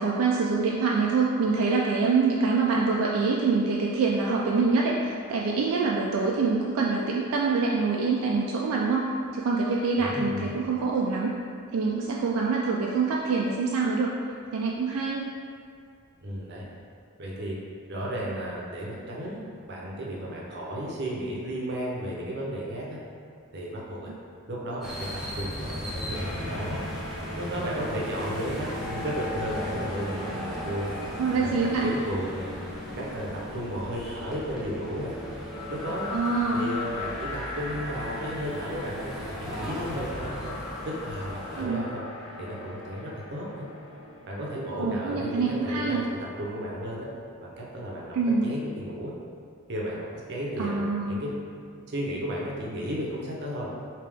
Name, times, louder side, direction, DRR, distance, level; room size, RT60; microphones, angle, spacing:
voice 1, 0.0-11.3 11.7-14.1 14.5-15.3 31.2-31.9 36.1-36.7 41.6-41.8 44.7-46.0 48.1-48.5 50.6-51.2, right 4 dB, 80° right, -2 dB, 0.3 m, -25 dB
voice 2, 10.0-10.6 16.2-16.6 17.2-17.6 17.9-19.4 19.7-23.0 23.5-24.1 24.5-26.8 27.4-30.9 31.4-32.5 33.0-35.1 35.7-36.1 36.5-40.5 40.8-42.0 42.4-43.7 44.2-46.0 46.4-47.1 47.4-48.2 48.4-49.1 49.7-50.0 50.3-51.3 51.9-53.7, equal, 50° right, -4 dB, 0.7 m, -34 dB
sound 1, 24.8-41.7, equal, ahead, 0.6 m, -38 dB
sound 2, 26.1-44.5, left 2 dB, 80° left, 0.5 m, -39 dB
3.3 x 2.8 x 3.4 m, 2.2 s
head